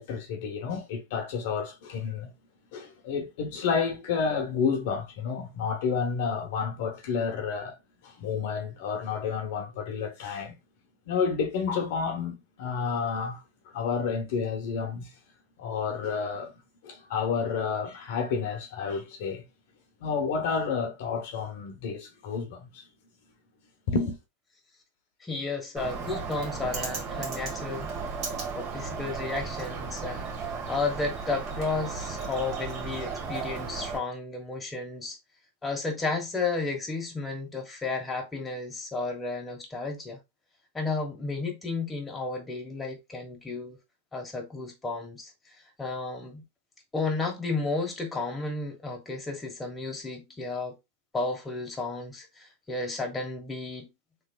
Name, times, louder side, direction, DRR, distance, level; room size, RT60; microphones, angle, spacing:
voice 1, 0.0-2.3 2.7-7.8 8.0-10.5 11.1-15.1 15.6-16.5 16.8-19.4 20.0-22.8 23.9-24.2, left 5 dB, 65° left, 0.9 m, -30 dB
voice 2, 25.2-27.9 28.5-35.2 35.6-40.2 40.7-43.8 44.1-45.3 45.8-46.4 46.9-50.8 51.1-53.9, left 3 dB, 15° left, 1.2 m, -33 dB
Bird, 25.8-34.0, right 5 dB, 40° right, 1.5 m, -35 dB
3.2 x 3.2 x 2.2 m
hypercardioid pair, 115°, 0 cm